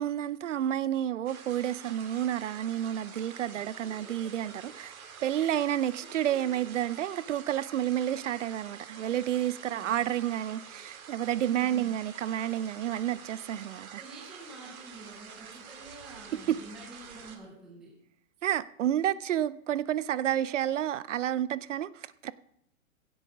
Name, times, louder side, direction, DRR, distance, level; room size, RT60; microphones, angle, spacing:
voice 1, 0.0-4.9 5.2-14.0 16.5-16.6 18.4-22.3, right 11 dB, 60° right, 0.6 m, -30 dB
sound 1, 1.3-17.4, right 6 dB, 85° right, 2.5 m, -48 dB
voice 2, 3.5-4.9 5.3-5.6 6.0-6.6 14.0-18.0, right 2 dB, ahead, 0.5 m, -49 dB
16.0 x 8.1 x 4.7 m
hypercardioid pair, 165°, 41 cm